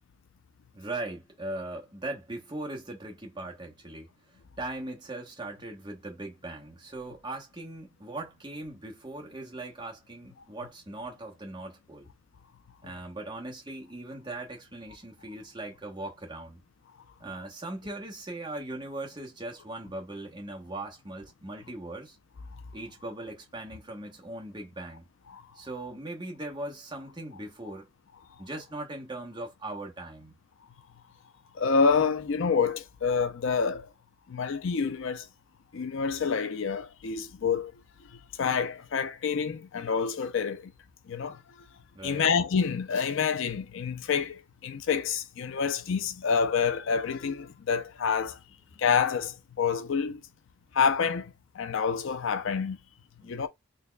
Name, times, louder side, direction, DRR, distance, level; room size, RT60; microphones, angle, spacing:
voice 1, 0.7-4.1 4.6-12.1 12.8-16.6 17.2-22.2 22.7-25.1 25.5-27.9 28.4-30.4 41.9-42.2 53.2-53.5, right 2 dB, 20° right, 1.0 m, -39 dB
voice 2, 31.6-33.9 34.3-35.3 35.7-37.7 38.4-40.7 41.1-41.4 42.0-48.4 48.8-50.2 50.7-52.8 53.2-53.5, left 6 dB, 60° left, 0.4 m, -27 dB
4.1 x 2.8 x 2.2 m
head